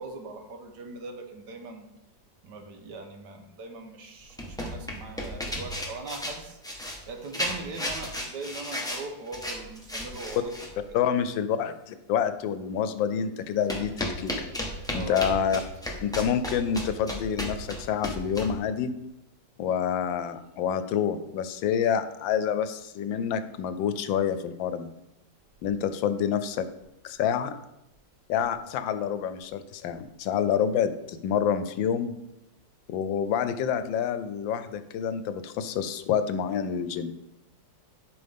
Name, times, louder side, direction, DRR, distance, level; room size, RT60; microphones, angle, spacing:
voice 1, 0.0-1.9 2.4-6.6 7.1-10.6 14.9-15.6, right 3 dB, 65° right, 4 dB, 1.6 m, -40 dB
sound 1, 4.2-10.8 13.7-18.6, left 1 dB, 5° left, 0.8 m, -34 dB
voice 2, 10.9-14.5 14.9-15.6 16.0-18.9 19.6-24.9 25.6-26.7 27.0-27.5 28.3-32.2 32.9-37.1, left 8 dB, 85° left, 12 dB, 1.4 m, -28 dB
11.5 x 5.3 x 3.5 m, 0.88 s
omnidirectional pair, 2.0 m